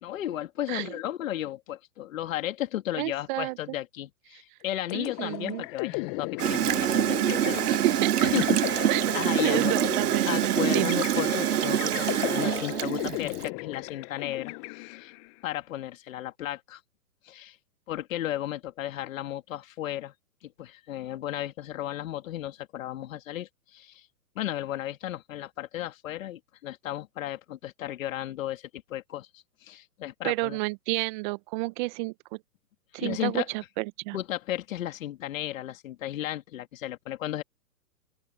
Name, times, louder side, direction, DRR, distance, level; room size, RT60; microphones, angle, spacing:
voice 1, 0.0-7.8 8.2-8.9 9.1-9.8 10.3-15.1 15.4-16.8 17.2-17.6 17.9-20.1 20.4-24.1 24.3-30.6 33.0-33.5 34.1-37.4, left 13 dB, 55° left, 2.8 m, -34 dB
voice 2, 0.7-1.0 3.0-3.6 4.9-5.6 7.7-8.3 8.9-11.0 30.2-32.1 32.9-34.2, right 24 dB, 30° right, 0.9 m, -31 dB
sound 1, 4.9-15.3, left 26 dB, 25° left, 0.8 m, -36 dB
Gurgling / Toilet flush, 6.4-13.5, right 11 dB, 75° right, 0.7 m, -25 dB
open air
hypercardioid pair, 130°, 46 cm